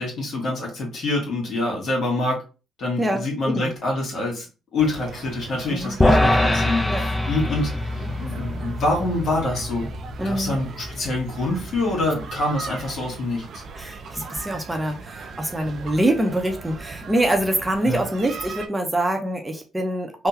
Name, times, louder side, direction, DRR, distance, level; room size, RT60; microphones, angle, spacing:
voice 1, 0.0-2.4 2.8-4.5 4.7-9.9 10.2-13.6 17.8-18.0, left 2 dB, 60° left, -1 dB, 1.7 m, -26 dB
voice 2, 3.0-3.7 5.7-6.0 6.9-7.0 10.2-10.6 13.8-20.3, right 1 dB, 20° right, 4 dB, 0.8 m, -25 dB
sound 1, 4.8-18.7, right 4 dB, 60° right, 0.5 m, -38 dB
sound 2, 6.0-12.4, left 1 dB, 15° left, 0.6 m, -24 dB
3.6 x 2.2 x 2.8 m, 0.32 s
hypercardioid pair, 50°, 0 cm